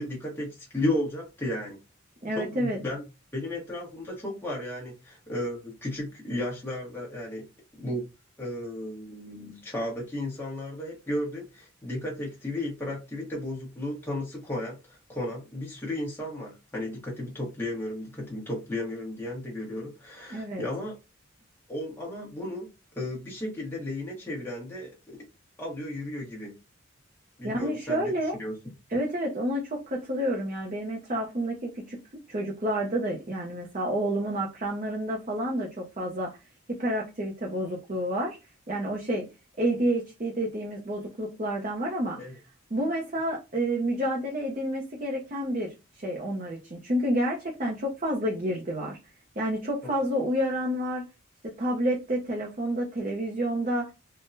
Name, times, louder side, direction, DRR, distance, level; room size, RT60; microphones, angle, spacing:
voice 1, 0.0-1.8 2.3-3.0 3.3-7.5 7.8-8.0 8.4-20.9 21.7-22.7 22.9-25.3 25.6-26.6 27.4-28.1 28.4-28.5 42.2-42.3 49.8-49.9, left 1 dB, 10° left, 1.1 m, -34 dB
voice 2, 2.2-2.8 20.3-20.6 27.4-28.4 28.9-32.0 32.3-36.3 36.8-38.4 38.7-39.2 39.6-42.2 42.7-49.0 49.4-51.0 51.6-53.9, right 1 dB, 35° right, 0.6 m, -29 dB
3.6 x 2.2 x 2.5 m
head